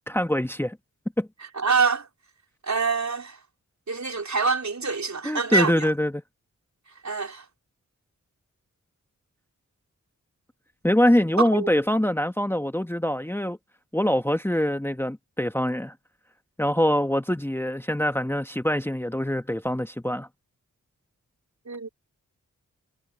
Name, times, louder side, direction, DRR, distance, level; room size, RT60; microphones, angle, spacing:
voice 1, 0.1-0.8 1.2-1.3 5.2-6.1 10.8-13.6 13.9-15.9 16.6-20.3, equal, 5° left, 1.4 m, -24 dB
voice 2, 1.5-2.1 2.6-3.4 3.9-5.9 7.0-7.5 11.4-11.7 21.7-21.9, right 4 dB, 55° right, 4.0 m, -25 dB
cardioid pair, 50°, 33 cm